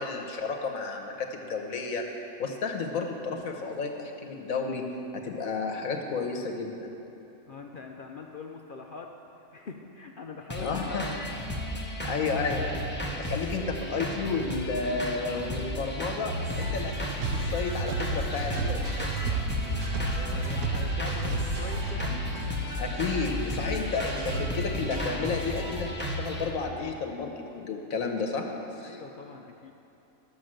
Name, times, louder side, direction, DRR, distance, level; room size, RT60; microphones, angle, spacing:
voice 1, 0.0-2.1 2.4-4.9 5.1-6.9 10.6-11.1 12.0-19.1 22.8-28.5 28.7-29.0, left 4 dB, 80° left, 3 dB, 1.5 m, -32 dB
voice 2, 7.5-9.1 9.4-11.2 11.7-11.9 20.1-22.2 28.8-29.7, left 4 dB, 55° left, 2 dB, 0.6 m, -42 dB
sound 1, 10.5-26.5, equal, 10° left, 1.0 m, -34 dB
sound 2, 16.4-25.9, left 2 dB, 60° right, 2.4 m, -36 dB
sound 3, 17.2-22.2, right 5 dB, 85° right, 1.1 m, -32 dB
12.0 x 6.6 x 7.6 m, 2.9 s
omnidirectional pair, 1.4 m